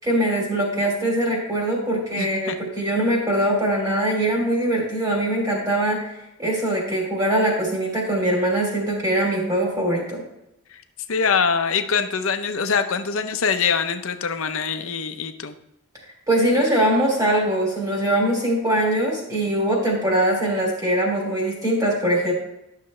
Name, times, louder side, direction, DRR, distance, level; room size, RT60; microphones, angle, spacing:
voice 1, 0.0-6.1 6.4-10.2 16.3-22.3, right 1 dB, 15° right, -2 dB, 2.9 m, -22 dB
voice 2, 2.2-2.6 10.7-10.8 11.1-15.5, left 6 dB, 70° left, 8 dB, 0.7 m, -24 dB
11.5 x 6.6 x 3.2 m, 0.87 s
head